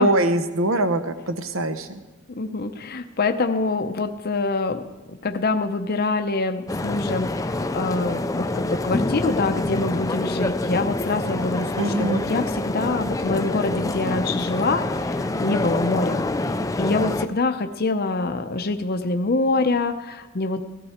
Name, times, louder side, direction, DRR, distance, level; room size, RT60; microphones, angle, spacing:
voice 1, 0.0-2.0 11.8-12.2, right 1 dB, 65° right, 10 dB, 0.9 m, -23 dB
voice 2, 2.3-4.8 5.2-16.2 16.8-20.6, left 3 dB, 45° left, 6 dB, 0.7 m, -25 dB
sound 1, 6.7-17.3, left 2 dB, 15° left, 0.5 m, -26 dB
17.0 x 13.5 x 4.3 m, 1.2 s
head